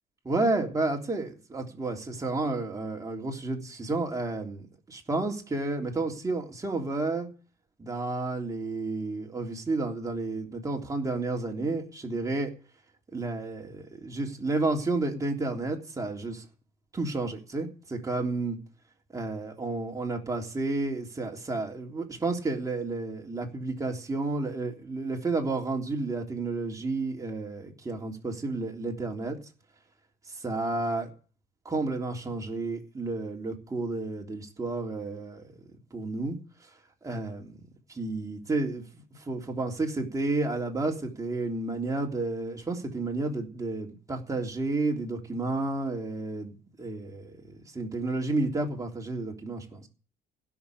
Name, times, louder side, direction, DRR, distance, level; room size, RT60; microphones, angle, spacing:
voice 1, 0.3-7.3 7.8-12.5 13.1-16.5 16.9-18.6 19.1-29.4 30.3-31.1 31.7-35.5 35.9-36.7 37.0-37.5 37.9-47.4 47.7-49.9, right 3 dB, 20° right, 3.4 m, -31 dB
16.5 x 6.9 x 9.7 m
cardioid pair, 110°, 17 cm